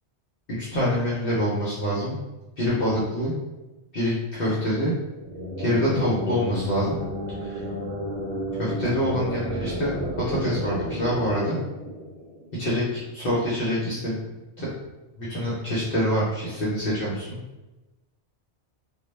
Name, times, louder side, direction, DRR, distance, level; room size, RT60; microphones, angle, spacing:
voice 1, 0.6-2.2 2.6-3.4 3.9-5.0 5.6-7.0 7.4-7.6 8.6-9.9 10.3-11.6 12.6-14.1 14.6-14.7 15.2-17.4, equal, 55° left, -8 dB, 0.8 m, -25 dB
sound 1, 5.1-12.7, equal, 70° right, 0.8 m, -32 dB
2.3 x 2.1 x 3.1 m, 1.1 s
omnidirectional pair, 1.2 m